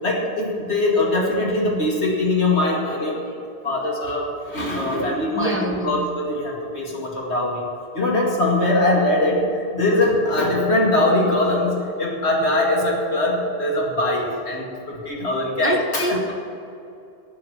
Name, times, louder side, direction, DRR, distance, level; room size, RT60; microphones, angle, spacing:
voice 1, 0.0-3.4 3.6-7.6 7.9-16.2, left 1 dB, 90° left, -2 dB, 2.6 m, -22 dB
voice 2, 5.3-6.0 15.6-16.3, equal, 10° right, 3 dB, 1.3 m, -25 dB
12.0 x 8.6 x 7.3 m, 2.6 s
omnidirectional pair, 1.1 m